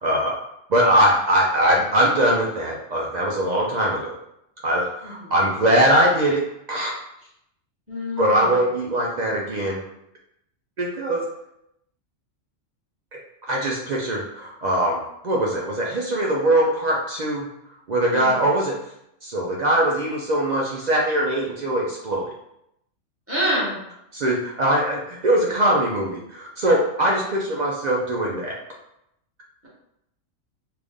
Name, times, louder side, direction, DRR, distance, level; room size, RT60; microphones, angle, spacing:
voice 1, 0.0-0.3 0.7-4.2 4.6-6.9 8.2-9.8 10.8-11.2 13.1-13.2 13.5-17.5 17.9-18.7 19.2-22.3 24.1-28.6, right 1 dB, 70° right, -2 dB, 0.4 m, -21 dB
voice 2, 5.0-5.3 7.9-8.4 18.1-18.4 23.3-23.8, equal, 10° right, -8 dB, 1.4 m, -26 dB
3.3 x 2.5 x 3.5 m, 0.80 s
omnidirectional pair, 1.3 m